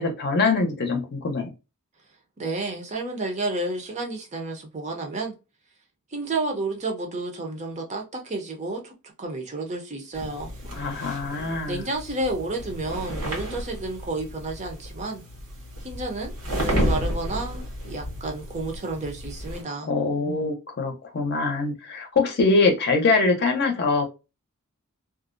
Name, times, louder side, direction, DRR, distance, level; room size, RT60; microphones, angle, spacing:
voice 1, 0.0-1.5 10.8-11.8 19.9-24.0, left 3 dB, 50° left, 0.6 m, -23 dB
voice 2, 2.4-5.3 6.1-8.9 9.2-10.5 11.7-15.2 15.8-19.9, right 2 dB, 30° right, 0.6 m, -31 dB
sound 1, 10.1-19.6, equal, 80° right, 1.2 m, -32 dB
2.4 x 2.0 x 2.5 m
head